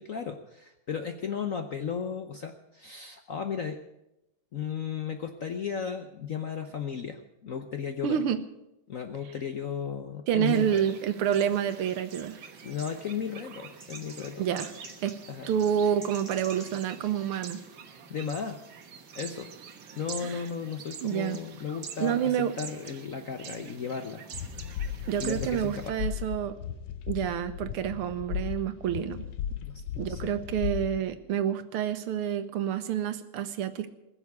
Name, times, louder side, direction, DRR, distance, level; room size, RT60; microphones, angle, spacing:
voice 1, 0.0-3.8 4.5-8.2 8.9-10.9 12.6-14.4 15.3-15.5 17.9-18.6 19.1-19.5 19.9-24.3 25.2-25.9 29.6-30.3, left 7 dB, 60° left, 6 dB, 0.8 m, -35 dB
voice 2, 8.0-8.4 10.3-12.4 14.4-14.7 15.0-15.2 15.5-17.6 20.2-20.4 21.0-21.4 22.0-22.5 25.1-26.5 27.1-29.3 30.0-33.9, right 9 dB, 85° right, 11 dB, 1.9 m, -28 dB
sound 1, 10.4-25.9, right 6 dB, 60° right, 1.8 m, -46 dB
sound 2, 13.8-15.2 15.5-15.6 15.8-17.6 18.3-18.9, right 1 dB, 20° right, 3.1 m, -48 dB
sound 3, 24.3-31.1, left 9 dB, 80° left, 1.7 m, -36 dB
20.5 x 7.1 x 8.3 m, 0.91 s
omnidirectional pair, 2.4 m